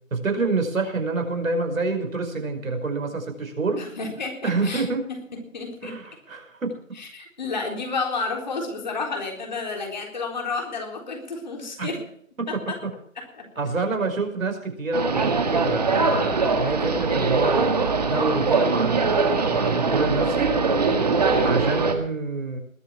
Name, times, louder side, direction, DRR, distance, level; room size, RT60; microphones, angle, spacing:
voice 1, 0.1-3.8 4.4-5.1 5.8-6.7 11.8-11.9 12.4-12.5 13.6-20.5 20.8-20.9 21.4-22.6, right 3 dB, 80° right, 4 dB, 5.3 m, -27 dB
voice 2, 3.8-4.8 5.3-6.0 7.0-12.0 12.5-12.8 13.2-13.5 21.2-21.5, left 3 dB, 35° left, 2 dB, 3.9 m, -31 dB
sound 1, 14.9-21.9, right 4 dB, 30° right, 1.6 m, -22 dB
20.5 x 7.8 x 6.1 m, 0.62 s
hypercardioid pair, 175°, 40 cm